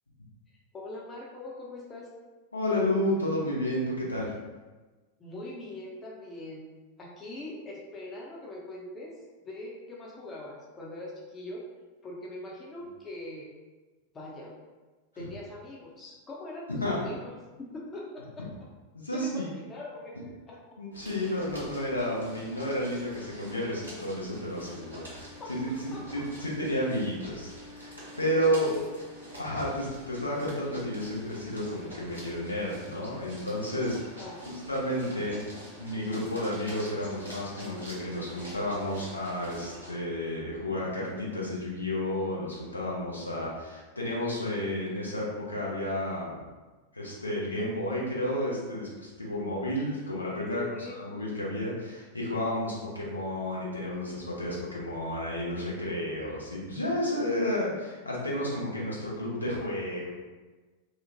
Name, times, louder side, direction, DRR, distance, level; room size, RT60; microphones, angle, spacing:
voice 1, 0.7-2.1 5.2-6.7 7.0-9.1 9.4-11.6 12.0-13.5 14.1-14.5 15.2-17.3 17.6-18.4 19.1-20.1 20.5-20.6 25.4-26.3 28.8-28.9 33.9-34.4 35.1-35.3 50.5-51.0, left 2 dB, 20° left, -3 dB, 0.5 m, -42 dB
voice 2, 2.5-4.3 15.2-15.3 16.8-17.0 19.0-19.5 20.8-28.7 29.4-34.0 34.5-35.4 35.8-46.4 46.9-50.6 50.9-60.1, left 1 dB, 80° left, -5 dB, 0.6 m, -31 dB
sound 1, 20.9-39.9, equal, 85° right, 0.8 m, -46 dB
2.9 x 2.1 x 2.6 m, 1.3 s
figure-of-eight pair, 90°, 0 cm